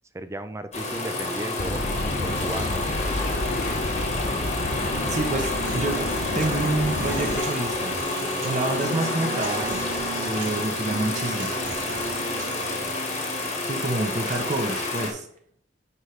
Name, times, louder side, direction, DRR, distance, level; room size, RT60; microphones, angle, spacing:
voice 1, 0.1-2.8, right 1 dB, 15° right, 10 dB, 0.5 m, -35 dB
sound 1, 0.7-15.1, left 2 dB, 40° left, 1.5 m, -29 dB
sound 2, 1.6-7.4, left 2 dB, 55° left, 0.7 m, -30 dB
Human voice, 4.9-12.9, right 3 dB, 75° right, 1.9 m, -36 dB
voice 2, 5.1-6.0 6.3-8.0 8.4-9.8 10.2-11.5 13.6-15.3, right 2 dB, 40° right, 3 dB, 1.0 m, -28 dB
9.7 x 5.4 x 3.3 m, 0.64 s
head